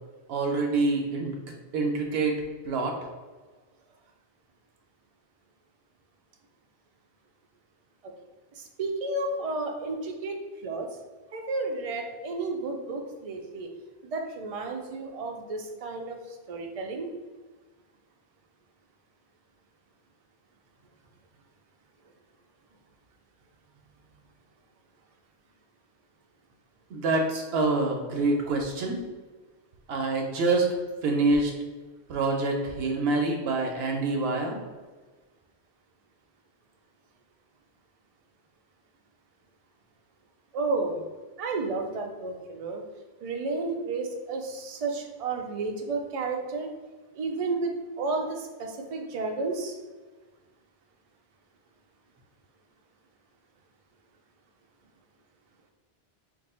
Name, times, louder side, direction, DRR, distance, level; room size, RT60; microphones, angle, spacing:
voice 1, 0.3-2.4 2.6-2.9 26.9-29.0 29.9-30.7 31.0-31.5 32.1-34.6, right 3 dB, 75° right, 0 dB, 0.8 m, -26 dB
voice 2, 8.6-10.4 10.6-10.9 11.3-13.7 14.0-16.2 16.5-17.1 40.5-41.0 41.4-42.8 43.2-46.7 47.1-49.8, right 3 dB, 50° right, 3 dB, 0.4 m, -32 dB
2.6 x 2.6 x 4.2 m, 1.4 s
omnidirectional pair, 1.1 m